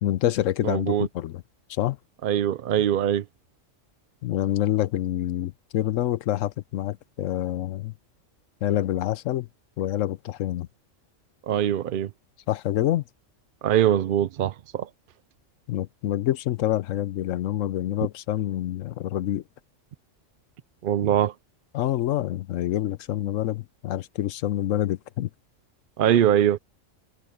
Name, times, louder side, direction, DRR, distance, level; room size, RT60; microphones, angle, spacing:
voice 1, 0.0-1.4 1.7-2.0 4.2-7.9 8.6-9.5 9.8-10.7 12.5-13.0 15.7-19.4 21.7-25.3, left 13 dB, 85° left, 1.0 m, -27 dB
voice 2, 0.6-1.1 2.2-3.2 11.5-12.1 13.6-14.9 20.8-21.3 26.0-26.6, right 10 dB, 60° right, 0.6 m, -22 dB
omnidirectional pair, 1.3 m